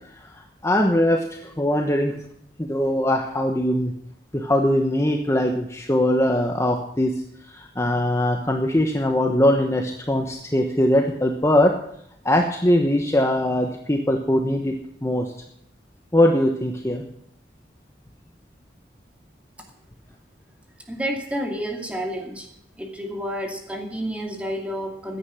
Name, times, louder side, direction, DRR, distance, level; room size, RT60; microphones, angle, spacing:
voice 1, 0.2-2.2 2.6-3.9 4.3-7.2 7.5-11.7 12.2-14.7 15.0-15.3 16.1-17.0, left 1 dB, 15° left, 3 dB, 1.1 m, -21 dB
voice 2, 20.9-22.5 22.8-25.2, equal, 10° right, 2 dB, 2.4 m, -30 dB
14.5 x 10.0 x 6.4 m, 0.73 s
head